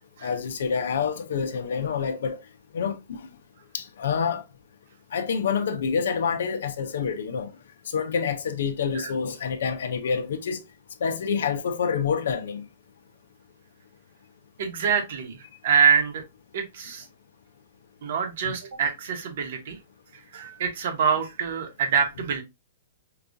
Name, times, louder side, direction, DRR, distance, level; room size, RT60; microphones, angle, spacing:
voice 1, 0.2-2.4 2.7-3.2 3.7-4.4 5.1-7.5 7.9-10.6 11.0-12.6 18.4-18.5, left 6 dB, 75° left, 0.5 m, -27 dB
voice 2, 14.6-15.4 15.6-16.2 16.5-17.1 18.0-19.8 20.1-22.4, right 6 dB, 55° right, 1.0 m, -25 dB
4.8 x 2.3 x 2.5 m
hypercardioid pair, 165°, 0 cm